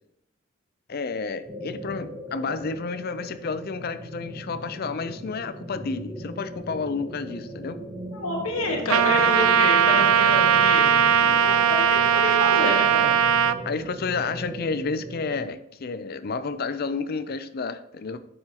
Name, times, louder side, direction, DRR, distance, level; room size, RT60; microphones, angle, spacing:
voice 1, 0.9-7.8 9.0-9.3 13.6-18.2, left 4 dB, 45° left, 11 dB, 0.5 m, -31 dB
sound 1, 1.4-15.5, right 1 dB, 10° right, 0.8 m, -38 dB
voice 2, 8.1-11.0 11.2-11.8 12.1-13.1, left 2 dB, 80° left, 1 dB, 1.5 m, -28 dB
Trumpet, 8.9-13.6, right 8 dB, 85° right, 0.4 m, -19 dB
9.7 x 6.7 x 2.9 m, 0.78 s
head